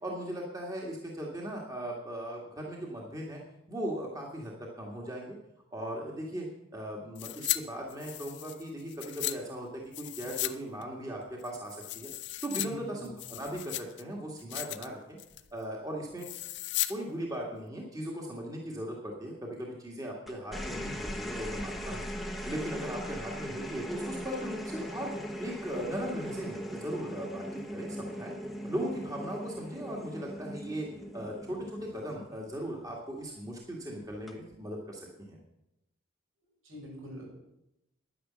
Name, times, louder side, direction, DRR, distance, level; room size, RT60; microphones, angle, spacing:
voice 1, 0.0-3.4 3.7-5.4 5.7-6.5 6.7-12.1 12.4-15.2 15.5-16.3 16.9-22.1 22.5-25.1 25.4-28.3 28.6-30.9 31.1-35.0 35.3-35.4, right 1 dB, 15° right, -2 dB, 1.9 m, -38 dB
sound 1, 7.1-7.6 7.9-9.3 9.9-10.5 10.8-10.9 11.4-12.7 13.0-14.0 14.4-14.9 15.2-15.5 16.2-16.9 17.2-17.3, left 16 dB, 55° left, 0.6 m, -35 dB
voice 2, 12.6-13.1 36.6-37.3, equal, 75° right, -1 dB, 6.3 m, -44 dB
sound 2, 20.3-32.9 34.1-34.5, equal, ahead, 1.1 m, -39 dB
10.5 x 10.0 x 7.5 m, 0.86 s
head